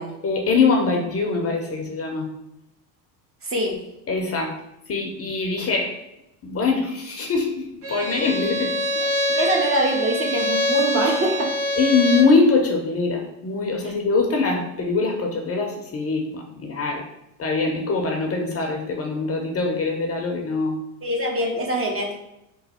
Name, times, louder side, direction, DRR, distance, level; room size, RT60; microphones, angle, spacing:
voice 1, 0.2-2.3 4.1-4.5 4.9-5.9 6.4-9.1 9.3-9.5 11.8-17.0 17.4-20.8, left 4 dB, 30° left, 1 dB, 0.6 m, -23 dB
voice 2, 3.4-3.8 9.4-11.6 13.8-13.9 21.0-22.2, right 1 dB, 25° right, 0 dB, 0.7 m, -24 dB
Bowed string instrument, 7.8-12.4, left 1 dB, 85° right, 1.4 m, -24 dB
3.1 x 2.1 x 4.2 m, 0.86 s
hypercardioid pair, 85°, 49 cm